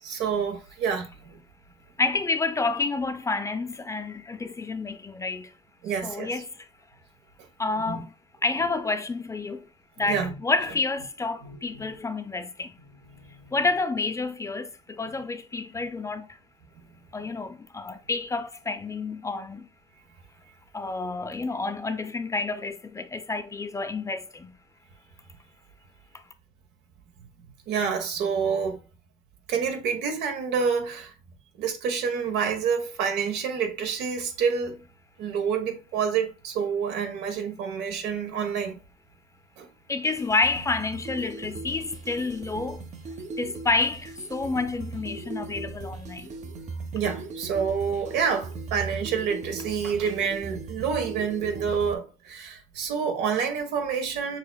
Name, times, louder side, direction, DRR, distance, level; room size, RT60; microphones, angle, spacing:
voice 1, 0.1-1.4 5.8-6.3 7.8-8.0 10.1-10.3 11.4-11.9 27.7-28.8 29.5-31.1 31.6-34.8 35.2-38.8 39.6-39.7 46.9-54.4, right 6 dB, 90° right, 1.1 m, -28 dB
voice 2, 2.0-5.5 6.0-6.7 7.6-8.1 8.4-9.7 10.0-12.8 13.5-16.4 17.1-19.7 20.7-24.5 26.1-26.2 39.9-42.8 43.4-46.3, left 3 dB, 20° left, 0.5 m, -29 dB
sound 1, 39.9-51.9, right 3 dB, 45° right, 0.7 m, -39 dB
6.7 x 2.8 x 2.3 m
cardioid pair, 110°, 17 cm